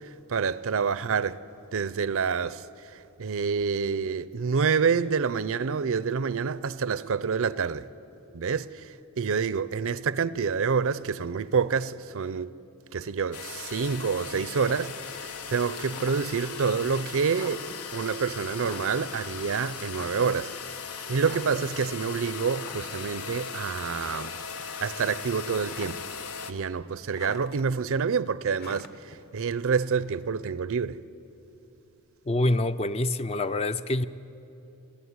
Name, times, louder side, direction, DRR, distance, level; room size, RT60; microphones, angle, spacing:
voice 1, 0.0-1.4 1.7-7.9 8.3-12.5 12.9-17.7 17.9-20.5 21.1-24.4 24.8-26.0 26.5-31.0, right 5 dB, 65° right, 0.6 m, -28 dB
sound 1, 13.3-26.5, left 6 dB, 90° left, 1.3 m, -38 dB
sound 2, 14.7-15.1 15.4-16.5 17.0-17.1 17.3-17.9 18.5-19.1 19.4-19.5 19.9-20.5 21.1-21.7 22.1-23.1 23.5-23.7 24.0-24.6 24.9-26.3 26.6-27.6 28.5-30.3, left 3 dB, 45° left, 1.2 m, -45 dB
voice 2, 32.3-34.0, left 2 dB, 25° left, 0.4 m, -26 dB
22.5 x 15.5 x 9.6 m
head